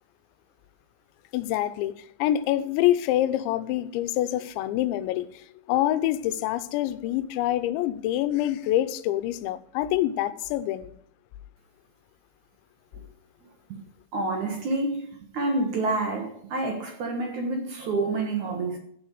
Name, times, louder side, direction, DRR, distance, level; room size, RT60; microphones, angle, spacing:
voice 1, 1.3-10.9, left 13 dB, 80° left, 3.0 m, -26 dB
voice 2, 14.1-18.8, right 2 dB, 65° right, 1.9 m, -28 dB
14.5 x 9.0 x 4.9 m
omnidirectional pair, 5.4 m